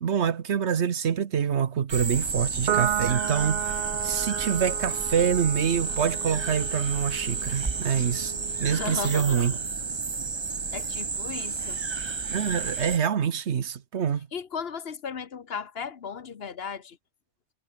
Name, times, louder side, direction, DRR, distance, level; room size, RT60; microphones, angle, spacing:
voice 1, 0.0-8.3 8.6-9.5 12.3-14.3, right 8 dB, 85° right, 1.3 m, -26 dB
sound 1, 1.9-13.0, right 4 dB, 30° right, 0.8 m, -31 dB
Piano, 2.7-9.4, right 10 dB, 65° right, 0.8 m, -33 dB
voice 2, 8.7-9.6 10.7-11.8 14.3-17.0, left 6 dB, 65° left, 1.3 m, -36 dB
omnidirectional pair, 1.1 m